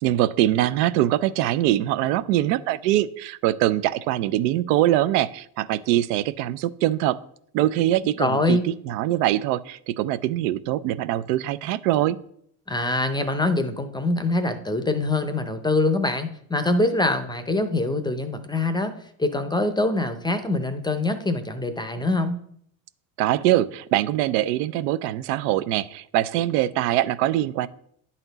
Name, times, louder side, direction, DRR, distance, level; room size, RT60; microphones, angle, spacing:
voice 1, 0.0-7.2 7.5-12.2 23.2-27.7, right 14 dB, 75° right, 15 dB, 0.6 m, -23 dB
voice 2, 8.2-8.7 12.7-18.9 19.2-22.4, left 2 dB, 10° left, 9 dB, 0.5 m, -24 dB
9.9 x 4.3 x 4.0 m, 0.67 s
supercardioid pair, 105°, 49 cm